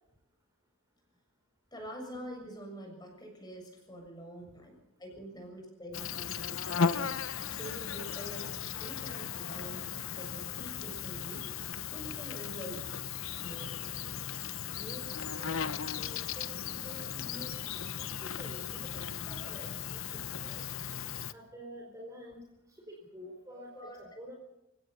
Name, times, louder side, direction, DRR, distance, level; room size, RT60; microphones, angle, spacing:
voice 1, 1.7-7.0 7.5-8.5 8.8-11.5 11.9-12.9 13.3-13.8 23.5-24.0, equal, 20° left, 2 dB, 7.1 m, -46 dB
Insect, 5.9-21.3, left 7 dB, 70° left, 0.9 m, -36 dB
voice 2, 14.7-20.7 21.3-22.4 22.7-24.4, equal, 15° right, 1 dB, 4.4 m, -49 dB
29.0 x 16.5 x 5.7 m, 0.89 s
head